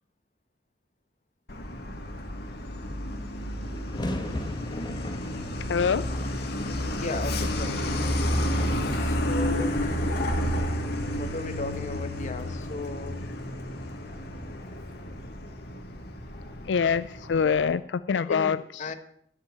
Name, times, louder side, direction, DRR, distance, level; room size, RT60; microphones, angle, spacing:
Truck, 1.5-17.7, left 1 dB, 60° left, 1.9 m, -31 dB
sound 1, 2.8-2.9 3.0-17.4, left 1 dB, 25° left, 1.3 m, -41 dB
voice 1, 5.7-6.0 8.4-8.9 16.6-18.9, left 6 dB, 85° left, 14 dB, 0.4 m, -26 dB
voice 2, 6.9-8.1 9.0-10.3 11.2-13.2 18.3-18.9, left 2 dB, 45° left, 7 dB, 1.3 m, -36 dB
11.0 x 7.2 x 8.2 m, 0.66 s
head